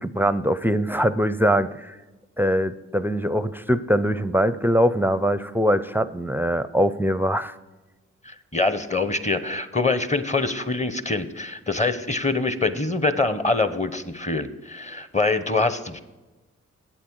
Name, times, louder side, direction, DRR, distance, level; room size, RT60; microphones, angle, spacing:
voice 1, 0.0-2.0 2.4-7.5, equal, 5° right, 14 dB, 0.5 m, -22 dB
voice 2, 8.3-16.0, left 3 dB, 25° left, 12 dB, 0.9 m, -24 dB
8.7 x 8.0 x 4.7 m, 1.2 s
supercardioid pair, 45°, 30 cm